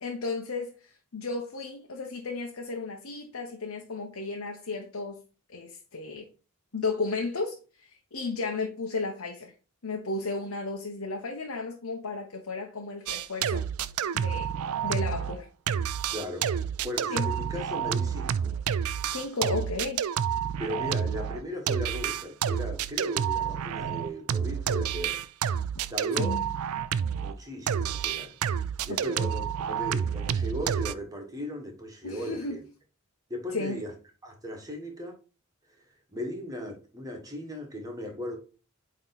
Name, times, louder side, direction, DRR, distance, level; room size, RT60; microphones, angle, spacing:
voice 1, 0.0-5.2 5.5-6.3 6.7-9.5 9.8-13.6 14.1-14.5 14.8-15.5 17.1-17.3 19.1-20.0 26.1-26.5 28.9-29.3 32.0-32.6 33.5-33.8, left 3 dB, 75° left, 0.9 m, -34 dB
sound 1, 13.1-15.4 15.7-27.3 27.7-30.9, right 8 dB, 90° right, 0.4 m, -29 dB
voice 2, 16.1-16.5 16.8-18.5 20.6-25.2 25.9-26.4 27.1-28.4 28.8-32.6 33.3-33.9 34.2-35.2 36.1-38.4, equal, 15° right, 1.5 m, -37 dB
8.6 x 3.1 x 4.0 m
head